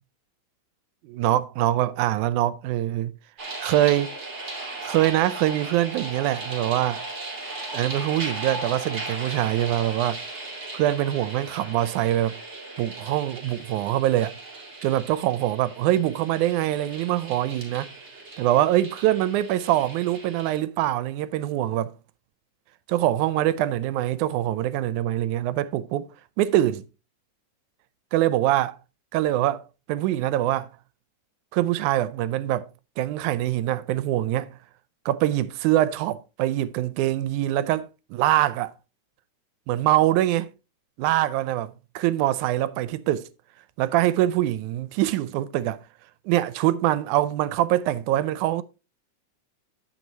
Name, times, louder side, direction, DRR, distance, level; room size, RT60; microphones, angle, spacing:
voice 1, 1.0-3.1 3.6-4.1 4.8-7.0 7.7-10.2 10.7-12.4 12.8-14.4 14.8-17.9 18.4-21.9 22.9-26.8 28.1-28.8 29.1-29.6 29.9-30.7 31.5-32.7 33.0-34.5 35.1-38.7 39.7-40.5 41.0-43.3 43.8-45.8 46.3-48.6, right 14 dB, 90° right, 2.1 m, -24 dB
sound 1, 3.4-20.6, right 2 dB, 25° right, 2.2 m, -37 dB
9.2 x 7.8 x 2.8 m
omnidirectional pair, 3.4 m